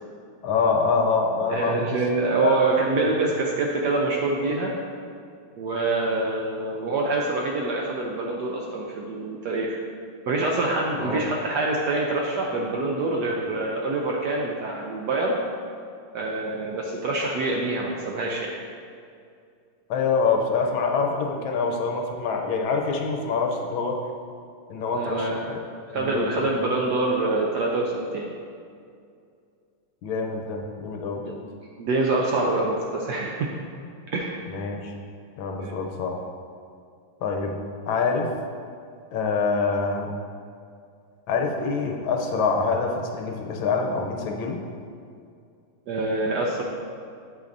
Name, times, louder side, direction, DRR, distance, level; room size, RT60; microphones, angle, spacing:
voice 1, 0.4-2.0 2.4-2.6 11.0-11.3 19.9-24.0 24.7-25.6 25.9-26.5 30.0-31.3 34.4-34.9 35.4-36.2 37.2-37.5 37.8-38.3 39.1-40.2 41.3-44.6, left 4 dB, 75° left, 2 dB, 1.4 m, -25 dB
voice 2, 1.5-4.7 5.6-9.8 10.3-15.4 16.1-18.5 24.9-25.5 25.9-28.3 31.2-31.5 31.8-33.5 34.1-34.4 35.6-35.8 45.9-46.6, right 2 dB, 70° right, -1 dB, 1.0 m, -25 dB
8.4 x 7.6 x 2.6 m, 2.3 s
omnidirectional pair, 2.3 m